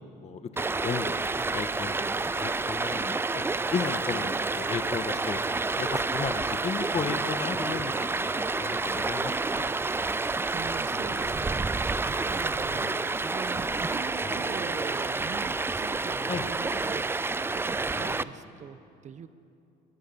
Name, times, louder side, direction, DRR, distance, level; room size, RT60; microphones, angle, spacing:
voice 1, 0.2-2.0 2.3-3.4 3.7-5.4 5.8-8.2 8.5-9.6 16.3-16.4, left 6 dB, 40° left, 9 dB, 1.6 m, -34 dB
Stream, 0.6-18.2, right 3 dB, 15° right, 0.5 m, -29 dB
sound 1, 4.9-6.2 6.6-6.7 6.9-8.0 8.6-8.8 9.1-9.2 9.8-10.6 10.9-11.3 11.6-11.7 12.0-12.1 12.4-12.5 12.7-16.6 17.6-18.2, left 2 dB, 15° left, 7.3 m, -46 dB
voice 2, 10.1-19.3, right 7 dB, 45° right, 12 dB, 1.3 m, -43 dB
23.0 x 23.0 x 7.2 m, 2.6 s
cardioid pair, 110°, 17 cm